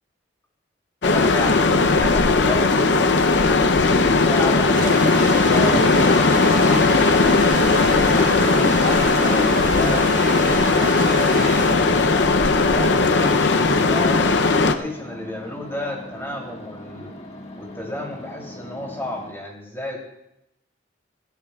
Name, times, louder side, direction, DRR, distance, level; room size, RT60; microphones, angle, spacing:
sound 1, 1.0-14.8, left 3 dB, 70° left, 0.7 m, -17 dB
voice 1, 1.0-7.1 7.6-12.2 12.7-17.1 17.6-20.0, left 1 dB, 15° left, -1 dB, 3.1 m, -32 dB
sound 2, 1.9-19.3, left 1 dB, 35° left, 1.7 m, -40 dB
sound 3, 4.7-11.7, right 6 dB, 45° right, 0.4 m, -32 dB
21.0 x 14.0 x 2.4 m, 0.84 s
head